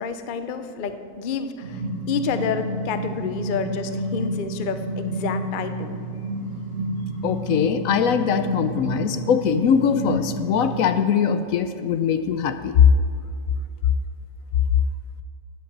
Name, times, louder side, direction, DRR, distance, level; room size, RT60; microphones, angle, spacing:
voice 1, 0.0-5.9, left 6 dB, 50° left, 9 dB, 0.6 m, -29 dB
sound 1, 1.6-11.0, right 1 dB, 45° right, 1.7 m, -30 dB
voice 2, 7.2-12.9, left 7 dB, 70° left, 10 dB, 1.0 m, -21 dB
10.0 x 7.9 x 7.3 m, 2.4 s
omnidirectional pair, 1.6 m